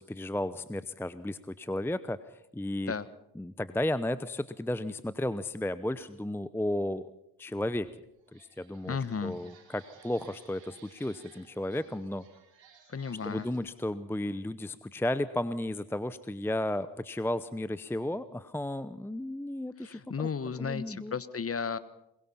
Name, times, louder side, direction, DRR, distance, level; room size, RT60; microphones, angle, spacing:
voice 1, 0.0-2.2 2.5-2.9 3.4-7.0 7.4-7.9 8.3-9.0 9.2-12.3 13.2-20.3 20.6-21.1, left 1 dB, 5° left, 15 dB, 0.8 m, -33 dB
sound 1, 7.7-7.8 8.2-13.6, right 7 dB, 65° right, 5.4 m, -59 dB
voice 2, 8.9-9.4 12.9-13.5 19.8-21.8, left 5 dB, 30° left, 16 dB, 1.3 m, -34 dB
21.5 x 21.5 x 5.7 m, 0.83 s
hypercardioid pair, 50°, 48 cm